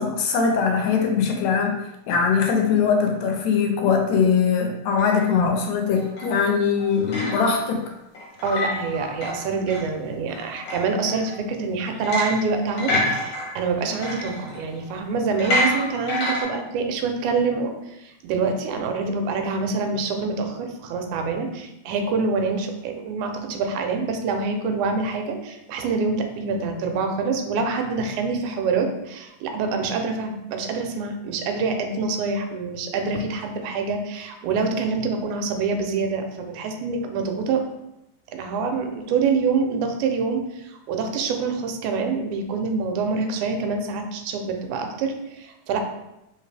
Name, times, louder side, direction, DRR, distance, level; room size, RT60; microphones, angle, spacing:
voice 1, 0.0-1.8 2.1-7.8 12.9-13.1, left 6 dB, 80° left, 3 dB, 1.8 m, -21 dB
sound 1, 5.0-5.3 5.9-6.3 6.7-7.8 8.1-9.9 10.3-11.4 12.0-12.5 12.8-14.9 15.4-16.4, left 1 dB, 55° left, 1.4 m, -28 dB
voice 2, 8.4-12.9 13.2-37.6 38.3-45.8, right 4 dB, 85° right, 4 dB, 2.1 m, -26 dB
4.6 x 3.2 x 3.3 m, 0.89 s
omnidirectional pair, 3.4 m